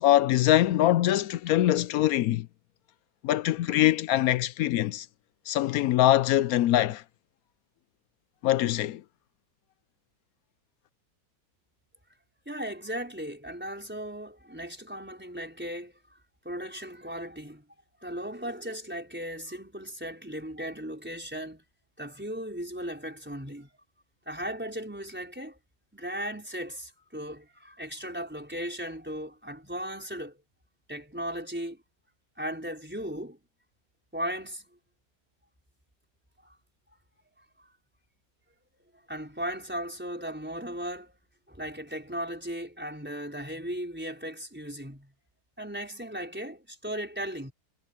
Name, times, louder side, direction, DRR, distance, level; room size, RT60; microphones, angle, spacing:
voice 1, 0.0-2.5 3.2-5.1 5.5-7.0 8.4-9.0, left 13 dB, 75° left, 0.8 m, -23 dB
voice 2, 12.5-16.0 16.4-17.6 18.0-21.6 22.0-23.7 24.3-25.6 25.9-30.4 30.9-31.8 32.4-33.4 34.1-34.7 36.4-36.5 37.6-37.7 39.1-41.2 41.5-45.1 45.6-47.5, equal, 5° right, 4.7 m, -37 dB
omnidirectional pair, 2.0 m